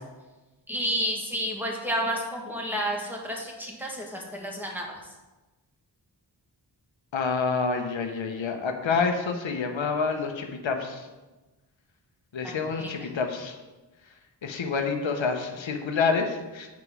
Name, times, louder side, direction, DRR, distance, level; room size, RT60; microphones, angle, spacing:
voice 1, 0.7-5.0 12.4-12.5 12.8-12.9, equal, 5° right, -1 dB, 1.9 m, -30 dB
voice 2, 7.1-11.1 12.3-13.6 14.4-16.7, left 5 dB, 85° left, 4 dB, 0.9 m, -28 dB
8.2 x 5.0 x 4.9 m, 1.1 s
wide cardioid pair, 65°, 45 cm